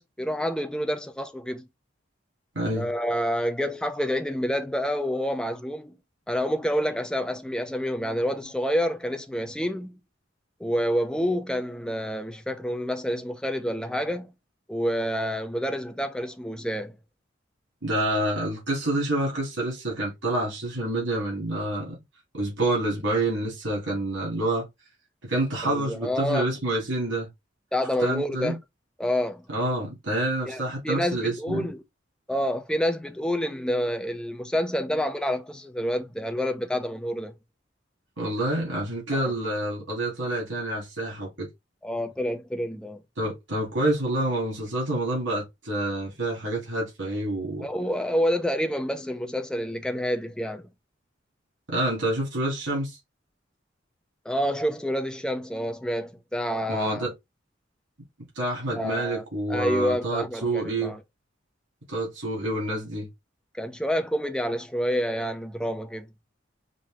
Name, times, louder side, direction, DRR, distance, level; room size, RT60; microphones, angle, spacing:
voice 1, 0.0-1.7 2.7-5.9 6.3-10.0 10.6-14.3 14.7-17.0 25.6-26.5 27.7-28.6 29.0-29.4 30.5-31.8 32.3-37.3 39.1-39.3 41.8-43.0 47.6-50.6 54.3-57.1 58.7-61.0 63.6-66.1, equal, 5° left, 0.5 m, -28 dB
voice 2, 2.5-2.9 17.8-22.0 22.3-24.7 25.2-27.3 28.0-28.6 29.5-31.7 38.2-41.5 43.2-47.7 51.7-53.0 56.7-57.1 58.4-60.9 61.9-63.1, right 1 dB, 80° right, 2.5 m, -28 dB
5.2 x 2.7 x 3.4 m
head